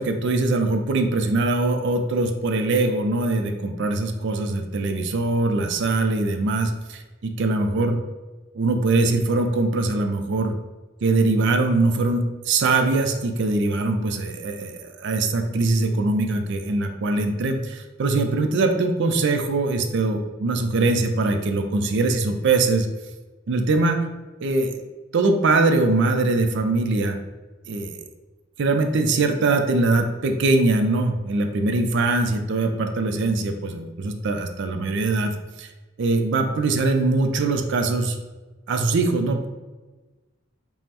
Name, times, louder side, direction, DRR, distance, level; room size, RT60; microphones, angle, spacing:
voice 1, 0.0-8.0 8.5-10.5 11.0-22.9 23.5-24.0 24.4-24.8 25.1-27.2 27.7-28.0 28.6-35.7 36.0-38.2 38.7-39.5, right 3 dB, 60° right, 5 dB, 0.4 m, -22 dB
5.3 x 2.0 x 2.9 m, 1.2 s
head